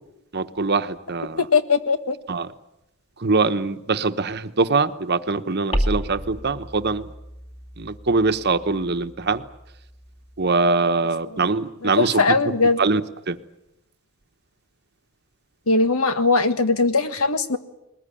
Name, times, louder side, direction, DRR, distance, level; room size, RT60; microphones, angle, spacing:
voice 1, 0.3-1.5 2.3-2.5 3.2-7.1 7.8-9.4 10.4-12.4 12.8-13.0 13.3-13.4, right 3 dB, 50° right, 9 dB, 1.0 m, -23 dB
voice 2, 1.4-2.2 11.8-12.8 15.7-17.6, left 3 dB, 80° left, 9 dB, 1.6 m, -20 dB
sound 1, 5.7-10.6, equal, 30° left, 2.6 m, -32 dB
21.0 x 20.5 x 9.9 m, 0.90 s
head